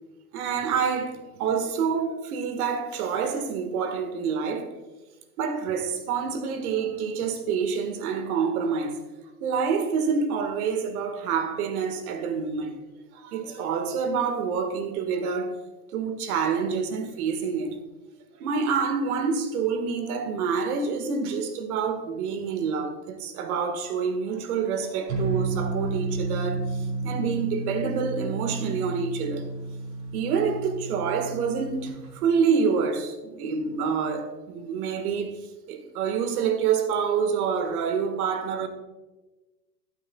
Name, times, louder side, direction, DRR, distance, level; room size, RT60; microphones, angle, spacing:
voice 1, 0.3-4.8 5.4-9.0 9.4-12.7 13.1-15.6 15.9-17.8 18.3-29.5 30.1-35.4 35.7-38.7, right 6 dB, 60° right, 1.8 m, -27 dB
sound 1, 25.1-31.9, right 3 dB, 40° right, 3.3 m, -31 dB
14.0 x 8.8 x 2.4 m
hypercardioid pair, 125°, 49 cm